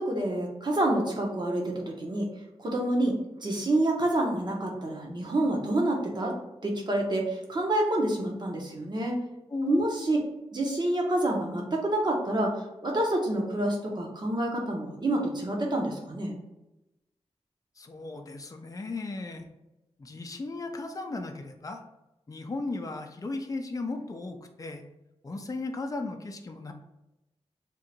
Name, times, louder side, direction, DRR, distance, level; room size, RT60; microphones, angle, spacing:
voice 1, 0.0-2.3 2.6-6.3 6.6-9.1 9.6-10.2 10.5-16.3, right 1 dB, 40° right, 0 dB, 1.1 m, -28 dB
voice 2, 9.5-9.9 17.8-19.5 20.0-21.8 22.3-24.8 25.2-26.7, left 2 dB, 30° left, 4 dB, 0.5 m, -35 dB
3.7 x 2.5 x 4.3 m, 0.96 s
wide cardioid pair, 90°, 11 cm